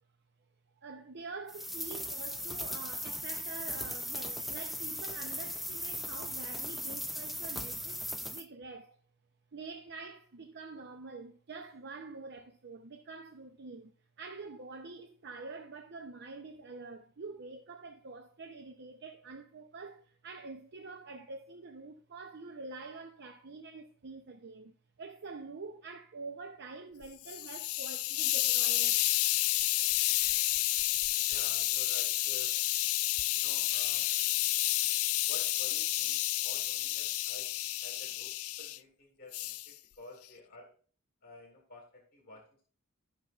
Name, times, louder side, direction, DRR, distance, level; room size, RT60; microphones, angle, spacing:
voice 1, 0.8-9.0 9.5-13.9 14.2-24.7 25.0-29.0, right 3 dB, 55° right, 0.7 m, -46 dB
sound 1, 1.5-8.4, equal, ahead, 0.6 m, -38 dB
Hiss, 27.0-38.8 39.3-39.7, left 16 dB, 75° left, 0.4 m, -30 dB
voice 2, 31.3-32.6 33.3-34.1 35.3-40.7 41.2-42.6, left 2 dB, 45° left, 1.6 m, -52 dB
13.5 x 5.8 x 2.4 m
head